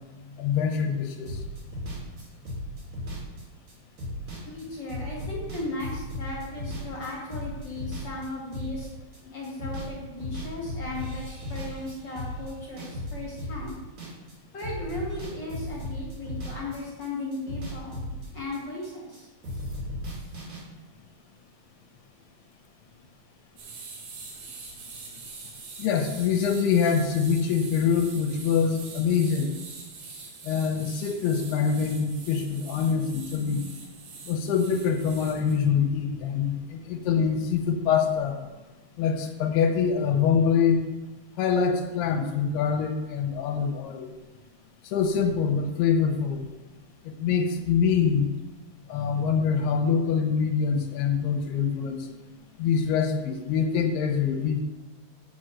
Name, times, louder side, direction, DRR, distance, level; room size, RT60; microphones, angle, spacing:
voice 1, 0.4-1.4 25.8-29.5 30.4-33.7 34.3-38.4 39.0-40.8 41.4-44.1 44.8-46.4 47.0-48.3 48.9-52.1 52.6-54.6, left 6 dB, 80° left, 4 dB, 3.0 m, -25 dB
sound 1, 1.3-9.2 9.4-9.9 10.2-14.3 14.6-19.2 19.4-20.6, equal, 50° right, 4.3 m, -36 dB
voice 2, 4.5-8.9 9.3-13.8 14.5-17.9 18.3-19.3, left 2 dB, 35° left, -4 dB, 2.1 m, -36 dB
sound 2, 23.6-35.6, right 4 dB, 80° right, 4.3 m, -44 dB
7.4 x 6.2 x 7.7 m, 1.1 s
omnidirectional pair, 4.6 m